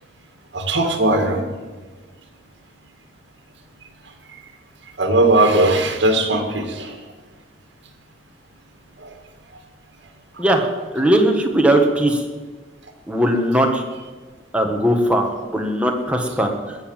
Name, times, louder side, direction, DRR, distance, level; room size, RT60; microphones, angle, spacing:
voice 1, 0.5-1.4 5.0-7.0 9.0-9.1, right 2 dB, 75° right, 4 dB, 2.3 m, -18 dB
voice 2, 10.9-12.2 13.1-13.8 14.5-16.8, right 1 dB, 5° right, 2 dB, 1.5 m, -19 dB
21.0 x 7.1 x 7.4 m, 1.3 s
head